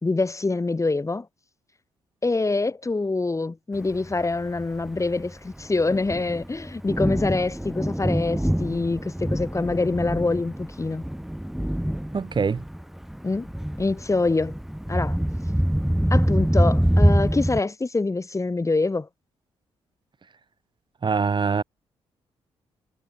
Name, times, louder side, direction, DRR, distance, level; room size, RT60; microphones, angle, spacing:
voice 1, 0.0-1.3 2.2-11.0 13.2-13.5 13.8-14.6 14.9-15.2 16.1-19.1, left 3 dB, 25° left, 2.5 m, -25 dB
Thunder, 3.9-17.6, equal, ahead, 0.5 m, -25 dB
voice 2, 12.1-12.6 21.0-21.6, right 5 dB, 40° right, 1.9 m, -23 dB
supercardioid pair, 55°, 12 cm